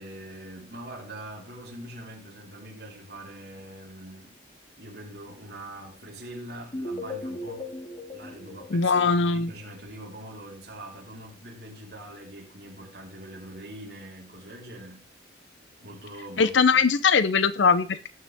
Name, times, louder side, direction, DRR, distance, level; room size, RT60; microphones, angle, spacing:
voice 1, 0.0-4.4 4.8-7.7 8.1-15.1 15.8-16.8, right 1 dB, 60° right, 4.3 m, -43 dB
sound 1, 6.7-9.7, left 1 dB, 30° left, 2.2 m, -37 dB
voice 2, 8.7-9.5 16.4-18.1, left 5 dB, 80° left, 0.7 m, -21 dB
17.5 x 6.7 x 3.6 m
head